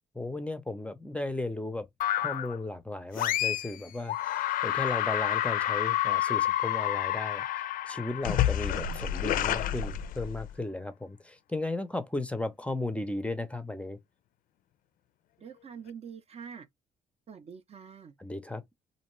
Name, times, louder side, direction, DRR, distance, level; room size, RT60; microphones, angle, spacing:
voice 1, 0.1-1.9 2.2-7.4 7.9-14.0 18.2-18.6, left 2 dB, 10° left, 0.5 m, -35 dB
sound 1, 2.0-2.6 3.2-3.8 4.1-10.5, left 12 dB, 65° left, 0.4 m, -29 dB
voice 2, 15.4-16.7 17.3-18.2, right 7 dB, 40° right, 0.5 m, -45 dB
2.5 x 2.1 x 3.0 m
supercardioid pair, 60°, 15 cm